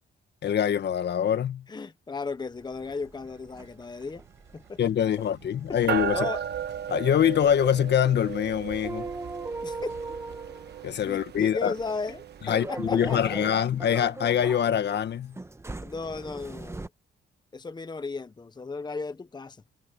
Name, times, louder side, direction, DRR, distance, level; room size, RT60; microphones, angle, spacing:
voice 1, 0.4-1.6 4.8-6.2 6.9-9.1 10.8-11.7 12.5-15.4, left 9 dB, 60° left, 1.7 m, -24 dB
voice 2, 1.7-4.2 4.5-4.8 5.7-6.4 9.6-9.9 11.1-13.4 15.8-16.9 17.5-19.6, left 4 dB, 20° left, 1.0 m, -35 dB
sound 1, 2.2-15.3 15.7-15.8, right 11 dB, 75° right, 5.0 m, -52 dB
sound 2, 2.6-16.9, right 2 dB, 15° right, 1.2 m, -40 dB
sound 3, 5.9-13.6, right 8 dB, 55° right, 1.4 m, -36 dB
cardioid pair, 90°, 20 cm